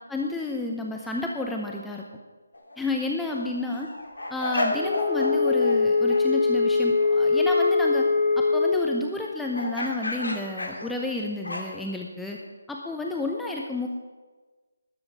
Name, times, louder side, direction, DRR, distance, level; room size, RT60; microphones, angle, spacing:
voice 1, 0.1-2.0 2.8-3.9 4.3-8.1 8.4-12.4 12.7-13.9, left 2 dB, 5° left, -1 dB, 0.7 m, -31 dB
Dogs Barking, 2.5-2.8 3.2-5.8 6.1-6.2 9.5-11.9, left 2 dB, 80° left, 2.3 m, -32 dB
Wind instrument woodwind instrument, 4.7-8.8, left 4 dB, 30° left, 3.1 m, -22 dB
12.5 x 7.4 x 7.4 m, 1.3 s
figure-of-eight pair, 155°, 0 cm